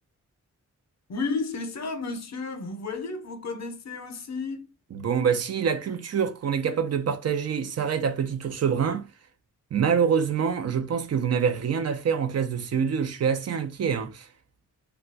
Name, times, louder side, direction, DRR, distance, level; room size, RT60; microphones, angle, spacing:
voice 1, 1.1-4.7, left 4 dB, 60° left, 0.7 m, -32 dB
voice 2, 4.9-9.1 9.7-14.3, right 7 dB, 55° right, 0.5 m, -26 dB
2.3 x 2.3 x 3.9 m
wide cardioid pair, 130°, 31 cm